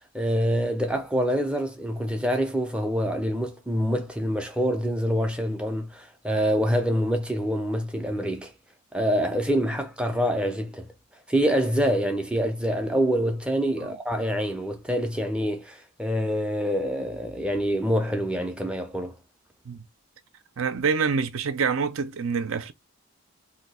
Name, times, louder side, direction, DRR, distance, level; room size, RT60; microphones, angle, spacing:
voice 1, 0.1-8.5 8.9-10.9 11.3-19.2, equal, 5° right, 0.4 m, -26 dB
voice 2, 20.6-22.7, right 5 dB, 65° right, 0.5 m, -26 dB
2.7 x 2.3 x 4.1 m
head